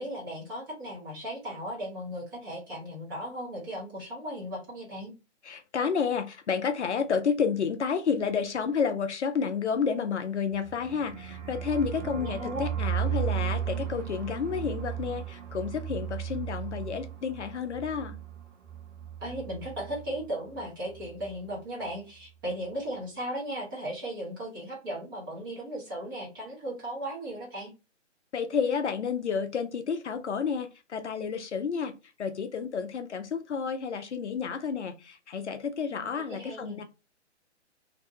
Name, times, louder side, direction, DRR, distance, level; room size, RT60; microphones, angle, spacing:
voice 1, 0.0-5.1 12.0-12.6 19.2-27.7 35.9-36.8, right 1 dB, 20° right, -5 dB, 0.7 m, -36 dB
voice 2, 5.4-18.2 28.3-36.8, left 6 dB, 70° left, 8 dB, 0.5 m, -30 dB
sound 1, 10.5-20.3 20.5-20.6 20.9-21.4, right 9 dB, 75° right, 0.7 m, -35 dB
2.6 x 2.1 x 2.6 m, 0.30 s
figure-of-eight pair, 135°, 36 cm